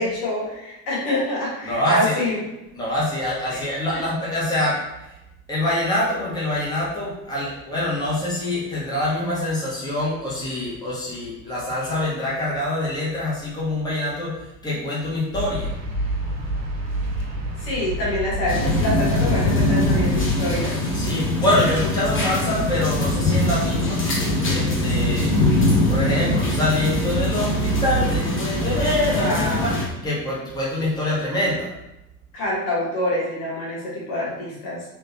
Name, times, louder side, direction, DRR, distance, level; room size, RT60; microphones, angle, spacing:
voice 1, 0.0-2.4 3.5-3.6 17.6-20.8 29.2-29.6 32.3-34.9, left 1 dB, 55° left, -5 dB, 1.5 m, -26 dB
voice 2, 1.6-2.1 2.7-5.2 5.5-15.7 20.9-24.0 24.5-25.4 25.9-29.7 30.0-31.7, left 1 dB, 10° left, -7 dB, 1.3 m, -25 dB
sound 1, 15.3-20.4, equal, 80° right, 0.7 m, -28 dB
sound 2, 18.5-29.9, left 1 dB, 25° left, 1.1 m, -22 dB
3.4 x 3.1 x 2.8 m, 0.92 s
figure-of-eight pair, 70°, 49 cm